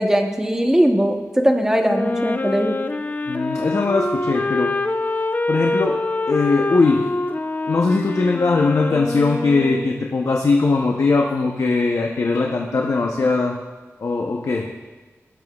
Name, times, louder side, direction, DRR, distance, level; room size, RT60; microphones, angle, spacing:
voice 1, 0.0-2.8, equal, 10° right, 3 dB, 1.0 m, -19 dB
Wind instrument woodwind instrument, 1.8-10.1, left 2 dB, 35° left, 0.5 m, -25 dB
voice 2, 3.3-4.7 5.5-6.0 6.3-7.1 7.7-13.5 14.0-14.7, left 3 dB, 75° left, 1 dB, 0.8 m, -20 dB
18.5 x 7.1 x 2.4 m, 1.3 s
wide cardioid pair, 75°, 5 cm